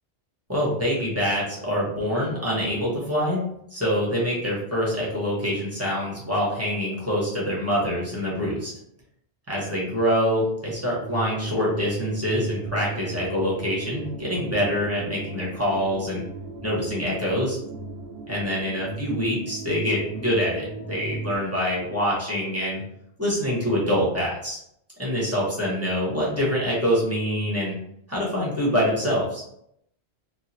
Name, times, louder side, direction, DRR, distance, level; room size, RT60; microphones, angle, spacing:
voice 1, 0.5-3.4 3.7-8.7 9.5-16.2 16.6-17.6 18.3-22.8 23.2-24.6 25.0-27.7 28.1-29.4, equal, 15° right, -6 dB, 1.0 m, -25 dB
sound 1, 11.0-21.4, right 3 dB, 75° right, 0.8 m, -36 dB
2.9 x 2.5 x 2.7 m, 0.73 s
omnidirectional pair, 1.1 m